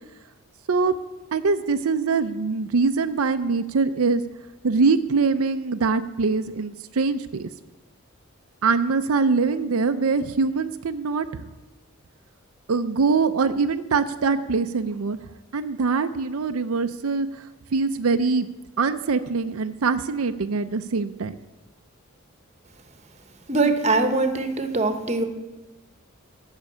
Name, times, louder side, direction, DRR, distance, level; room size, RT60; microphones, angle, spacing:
voice 1, 1.3-4.2 4.6-7.5 8.6-11.4 12.7-15.2 15.5-17.3 17.7-18.5 18.8-21.4, right 4 dB, 85° right, 9 dB, 0.5 m, -23 dB
voice 2, 23.5-25.2, right 3 dB, 30° right, 8 dB, 1.0 m, -22 dB
12.0 x 6.5 x 8.4 m, 1.1 s
head